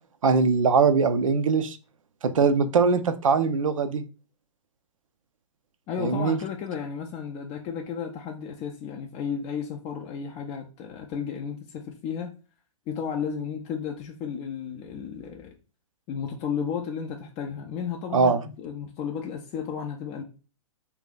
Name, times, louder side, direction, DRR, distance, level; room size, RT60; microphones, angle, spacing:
voice 1, 0.2-1.8 2.2-4.0 6.0-6.4 18.1-18.4, right 5 dB, 75° right, 0.5 m, -21 dB
voice 2, 5.9-12.3 12.9-15.5 16.1-20.2, left 7 dB, 25° left, 0.4 m, -33 dB
2.7 x 2.3 x 3.7 m
hypercardioid pair, 120°, 17 cm